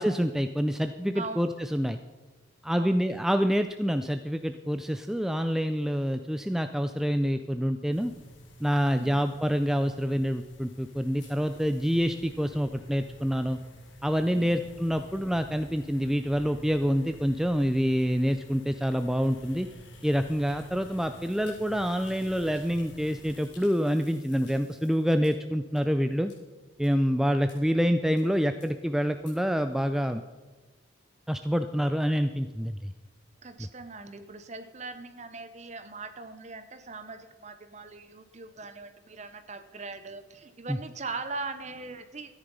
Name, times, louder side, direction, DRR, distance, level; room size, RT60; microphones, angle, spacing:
voice 1, 0.0-2.0 2.6-8.1 8.6-13.6 14.0-19.7 20.0-26.3 26.8-30.2 31.3-32.9 33.6-33.7 40.7-40.8, equal, ahead, 8 dB, 0.3 m, -27 dB
voice 2, 2.7-3.1 8.9-9.2 14.3-14.6 33.4-42.4, right 3 dB, 35° right, 10 dB, 0.9 m, -40 dB
sound 1, 7.9-23.4, equal, 75° left, 1.7 m, -50 dB
sound 2, 11.2-25.3 25.8-25.9 26.3-26.4 26.8-26.9 27.5-27.6 28.2-28.3 28.6-28.7 29.2-29.3, left 4 dB, 55° left, 4.8 m, -60 dB
13.5 x 10.0 x 5.4 m, 1.2 s
head